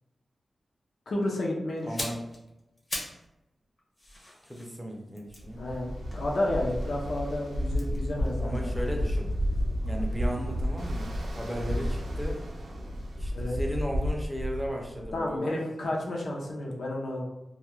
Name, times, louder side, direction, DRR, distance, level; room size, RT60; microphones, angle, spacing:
voice 1, 1.1-1.9 5.6-8.7 13.3-13.6 15.1-17.2, left 1 dB, 70° left, -2 dB, 0.6 m, -31 dB
sound 1, 1.8-3.3 3.6-6.9 7.7-9.7 10.0-10.2, left 1 dB, 30° left, 0.7 m, -42 dB
voice 2, 1.8-2.2 4.4-5.6 8.4-9.3 9.8-12.4 13.2-15.6, equal, 5° right, 0 dB, 0.5 m, -35 dB
Ocean, 5.4-15.3, equal, 90° right, 0.4 m, -31 dB
2.3 x 2.2 x 3.0 m, 0.95 s
wide cardioid pair, 120°, 0 cm